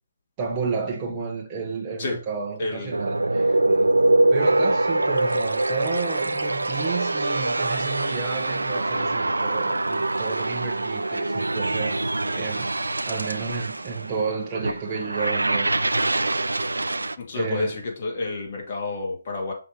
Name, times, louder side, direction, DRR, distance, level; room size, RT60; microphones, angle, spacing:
voice 1, 0.4-3.6 4.3-12.7 13.0-15.7 17.3-17.8, right 5 dB, 25° right, 1.1 m, -31 dB
voice 2, 2.6-3.0 3.6-3.9 17.2-19.5, left 3 dB, 45° left, 2.2 m, -30 dB
sound 1, 2.9-17.1, right 2 dB, 90° right, 0.4 m, -24 dB
5.8 x 3.3 x 5.3 m
figure-of-eight pair, 150°, 0 cm